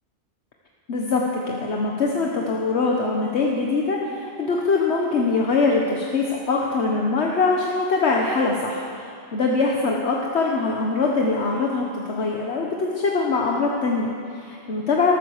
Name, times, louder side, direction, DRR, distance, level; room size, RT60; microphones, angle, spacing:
voice 1, 0.9-15.1, left 3 dB, 70° left, -1 dB, 1.4 m, -23 dB
13.5 x 13.5 x 6.5 m, 2.4 s
omnidirectional pair, 1.2 m